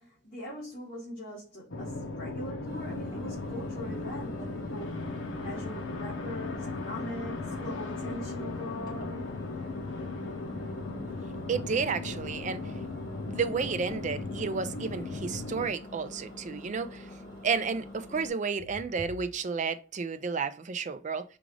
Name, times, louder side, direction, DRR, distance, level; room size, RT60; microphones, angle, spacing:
voice 1, 0.0-5.1 5.4-9.4, equal, 55° left, 1.9 m, -41 dB
sound 1, 1.7-15.7, left 3 dB, 85° left, 0.7 m, -37 dB
Engine, 2.7-18.3, left 1 dB, 25° left, 1.4 m, -46 dB
voice 2, 11.5-12.6 13.3-17.1 17.4-21.2, right 5 dB, 40° right, 0.4 m, -31 dB
4.9 x 2.5 x 3.2 m
head